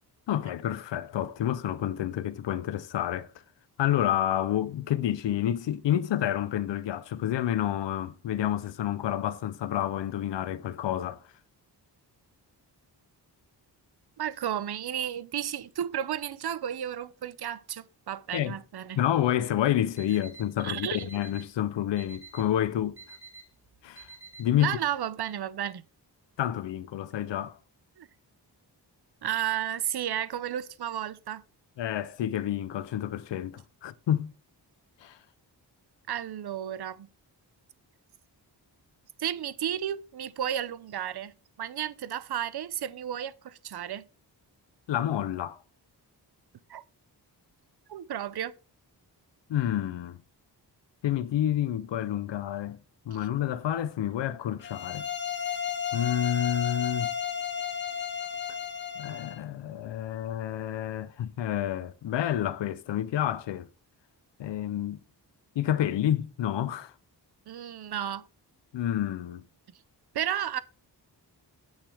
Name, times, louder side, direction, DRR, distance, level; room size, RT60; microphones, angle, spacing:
voice 1, 0.3-3.3 3.8-11.2 18.3-18.5 19.0-23.0 23.8-24.1 24.4-24.8 26.4-27.6 31.8-34.3 35.0-35.2 44.9-45.6 49.5-50.2 51.0-52.8 53.1-55.1 55.9-57.1 59.0-63.7 64.4-65.0 65.6-66.9 68.7-69.4, left 11 dB, 85° left, 0.6 m, -29 dB
voice 2, 14.2-19.0 20.6-21.1 24.6-25.8 28.0-28.1 29.2-31.4 36.1-37.1 39.2-44.0 46.7-46.8 47.9-48.5 67.5-68.3 70.1-70.6, right 10 dB, 65° right, 0.7 m, -33 dB
Alarm, 19.8-24.7, right 4 dB, 30° right, 1.7 m, -50 dB
sound 1, 54.6-59.4, left 8 dB, 25° left, 0.7 m, -33 dB
8.9 x 6.6 x 3.4 m
wide cardioid pair, 130°, 42 cm